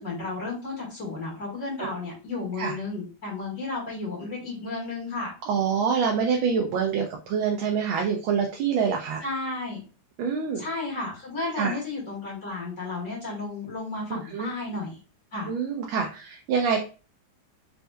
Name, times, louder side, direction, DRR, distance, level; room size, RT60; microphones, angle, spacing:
voice 1, 0.0-5.3 9.2-9.8 10.6-15.0 15.3-15.5, left 3 dB, 40° left, -5 dB, 2.0 m, -33 dB
voice 2, 5.5-9.2 10.2-10.6 11.5-11.8 14.3-14.5 15.5-16.8, right 6 dB, 80° right, 2 dB, 1.3 m, -26 dB
4.3 x 2.8 x 2.2 m, 0.34 s
omnidirectional pair, 2.2 m